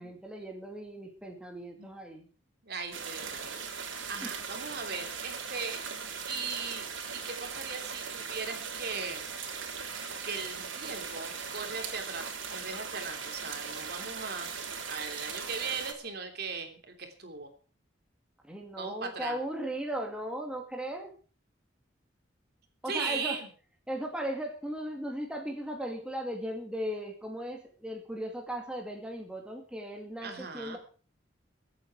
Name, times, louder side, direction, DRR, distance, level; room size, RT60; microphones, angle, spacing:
voice 1, 0.0-2.3 4.2-4.3 18.4-21.1 22.8-23.4 23.9-30.8, right 1 dB, 5° right, 1 dB, 2.3 m, -37 dB
voice 2, 2.6-3.5 3.8-5.8 6.3-9.3 10.2-12.3 12.5-17.5 18.8-19.4 22.9-23.5 30.2-30.8, right 4 dB, 55° right, 4 dB, 3.1 m, -38 dB
sound 1, 2.9-15.9, right 6 dB, 90° right, 3.3 m, -39 dB
23.5 x 8.8 x 4.8 m, 0.40 s
head